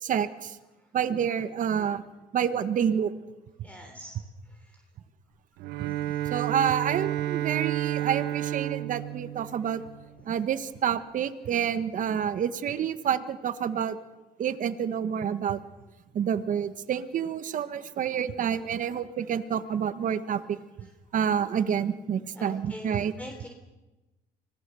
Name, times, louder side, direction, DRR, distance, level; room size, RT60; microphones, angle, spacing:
voice 1, 0.0-0.6 0.9-2.0 2.3-3.1 5.8-5.9 6.2-9.8 10.2-14.0 14.4-15.6 16.1-20.9 21.1-23.1, right 8 dB, 50° right, 11 dB, 1.3 m, -28 dB
voice 2, 3.6-4.1 22.3-23.5, equal, 10° left, 3 dB, 3.4 m, -43 dB
Bowed string instrument, 5.6-10.2, right 13 dB, 85° right, 0.8 m, -31 dB
25.5 x 18.5 x 7.0 m, 1.1 s
cardioid pair, 110°, 17 cm